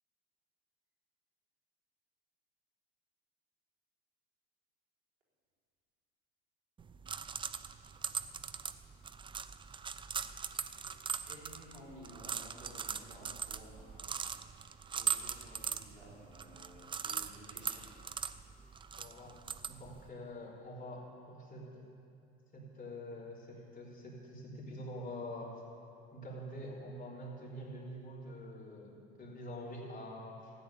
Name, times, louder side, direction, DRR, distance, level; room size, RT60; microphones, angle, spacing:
sound 1, 6.8-20.1, right 6 dB, 15° right, 0.4 m, -41 dB
voice 1, 11.3-14.6 14.9-17.9, right 1 dB, 85° right, -4 dB, 4.0 m, -54 dB
voice 2, 19.0-19.4 19.7-21.9 22.5-25.6 26.1-30.5, equal, 25° left, -3 dB, 3.6 m, -46 dB
14.5 x 9.6 x 7.2 m, 2.5 s
hypercardioid pair, 80°, 32 cm